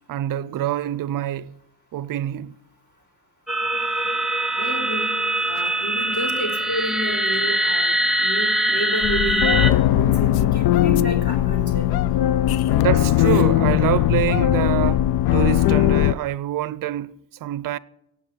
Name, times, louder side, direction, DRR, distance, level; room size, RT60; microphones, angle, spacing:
voice 1, 0.1-1.6 1.9-2.5 5.5-5.7 12.8-17.8, right 13 dB, 60° right, 0.6 m, -26 dB
sound 1, 3.5-9.7, right 1 dB, ahead, 0.8 m, -23 dB
voice 2, 4.5-5.1 5.5-11.9 13.3-13.4, right 1 dB, 25° left, 3.8 m, -30 dB
sound 2, 9.0-16.1, left 13 dB, 75° left, 0.5 m, -19 dB
17.5 x 8.4 x 8.5 m
wide cardioid pair, 175°, 37 cm